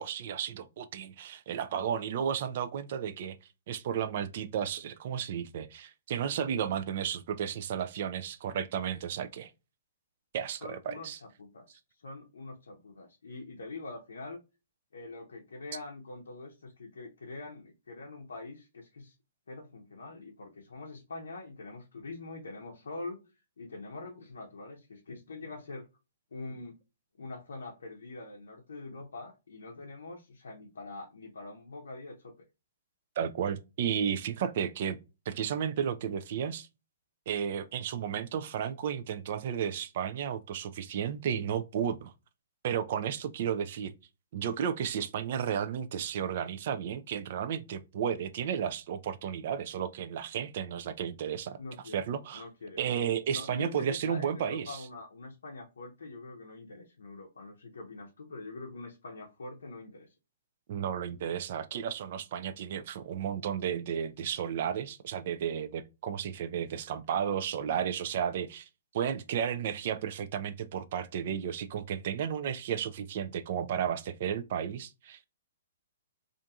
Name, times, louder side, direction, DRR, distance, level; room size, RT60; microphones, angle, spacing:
voice 1, 0.0-3.4 3.7-9.5 10.3-11.2 33.2-35.0 35.3-36.7 37.3-42.1 42.6-43.9 44.3-51.6 51.9-52.4 52.8-54.8 60.7-68.7 68.9-75.3, right 8 dB, 55° right, 0.3 m, -33 dB
voice 2, 10.6-14.4 14.9-19.2 19.5-25.9 26.3-26.8 27.2-32.3 51.6-52.0 52.3-60.1, left 3 dB, 80° left, 0.5 m, -44 dB
2.7 x 2.4 x 2.3 m
hypercardioid pair, 130°, 0 cm